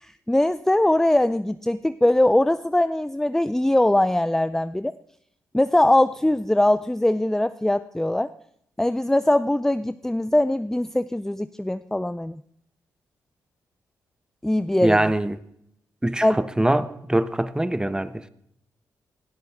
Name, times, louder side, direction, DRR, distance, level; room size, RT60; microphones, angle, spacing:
voice 1, 0.0-4.9 5.5-8.3 8.8-12.4 14.4-15.0 16.2-16.4, left 1 dB, 5° left, 0.4 m, -21 dB
voice 2, 14.8-15.4 16.0-18.2, right 1 dB, 10° right, 0.9 m, -23 dB
19.0 x 13.5 x 3.6 m
supercardioid pair, 55°, 7 cm